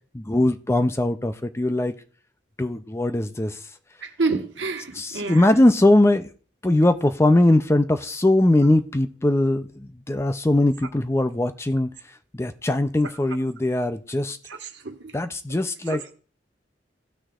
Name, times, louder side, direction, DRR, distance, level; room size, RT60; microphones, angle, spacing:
voice 1, 0.1-1.9 2.6-3.6 5.0-6.3 6.6-11.9 12.3-14.4 15.1-16.0, left 1 dB, 15° left, 0.4 m, -20 dB
voice 2, 4.0-5.6 14.5-15.1 15.9-16.1, right 3 dB, 80° right, 1.3 m, -29 dB
17.0 x 6.3 x 2.4 m
head